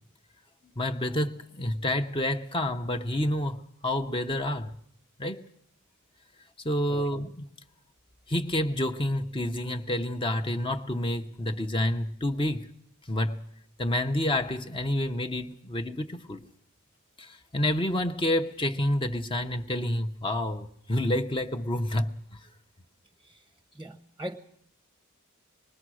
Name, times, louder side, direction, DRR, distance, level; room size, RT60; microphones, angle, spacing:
voice 1, 0.8-4.7 5.2-5.4 6.6-7.5 8.3-12.7 13.1-13.4 13.8-16.5 17.2-22.4, left 1 dB, 25° left, 0.8 m, -29 dB
voice 2, 23.7-24.4, equal, 10° right, 0.8 m, -40 dB
26.0 x 20.0 x 6.3 m
head